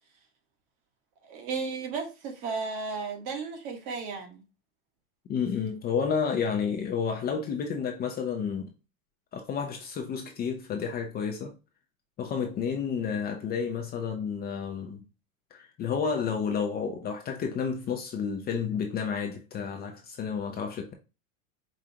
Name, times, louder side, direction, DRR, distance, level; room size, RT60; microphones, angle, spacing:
voice 1, 1.2-4.4, right 4 dB, 50° right, 1.4 m, -34 dB
voice 2, 5.3-8.7 9.3-11.5 12.2-15.0 15.5-20.9, left 6 dB, 25° left, 0.5 m, -31 dB
5.0 x 2.4 x 2.8 m
supercardioid pair, 120°, 42 cm